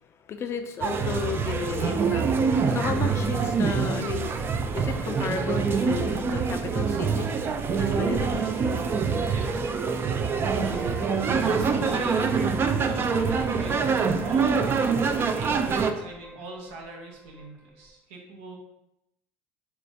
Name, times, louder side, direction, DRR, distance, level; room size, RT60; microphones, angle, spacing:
voice 1, 0.0-4.4 4.7-7.3 7.7-8.3, left 6 dB, 40° left, 8 dB, 0.4 m, -33 dB
sound 1, 0.8-17.9, right 1 dB, 10° right, 0.7 m, -44 dB
sound 2, 0.8-15.9, right 5 dB, 35° right, 0.4 m, -25 dB
voice 2, 9.3-9.7 11.3-18.6, right 2 dB, 80° right, 0 dB, 0.9 m, -41 dB
4.3 x 2.3 x 2.6 m, 0.85 s
hypercardioid pair, 80°, 7 cm